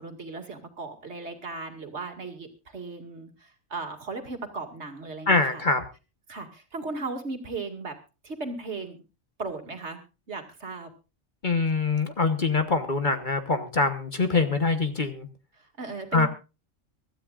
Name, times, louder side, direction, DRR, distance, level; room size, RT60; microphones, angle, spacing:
voice 1, 0.0-5.6 6.3-8.0 8.2-9.0 9.4-10.0 10.3-10.9 15.8-16.3, right 3 dB, 60° right, 4 dB, 2.5 m, -36 dB
voice 2, 5.3-5.8 11.4-15.3 16.1-16.3, left 3 dB, 40° left, 8 dB, 1.3 m, -24 dB
24.5 x 13.0 x 2.5 m, 0.29 s
omnidirectional pair, 1.3 m